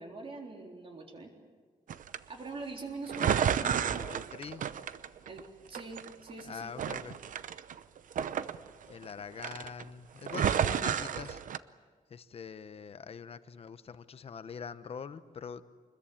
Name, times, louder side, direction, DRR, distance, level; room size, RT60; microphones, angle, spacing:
voice 1, 0.0-1.3 2.3-3.9 5.3-6.7, right 3 dB, 40° right, 1 dB, 3.8 m, -43 dB
sound 1, 1.9-2.2 3.1-5.5 5.7-6.4 6.8-9.1 9.4-9.8 10.2-11.6, right 8 dB, 70° right, 0.8 m, -31 dB
voice 2, 3.6-4.6 6.4-7.2 8.9-11.4 12.1-15.6, left 6 dB, 45° left, 12 dB, 0.9 m, -44 dB
25.5 x 21.0 x 8.6 m, 1.5 s
wide cardioid pair, 175°, 14 cm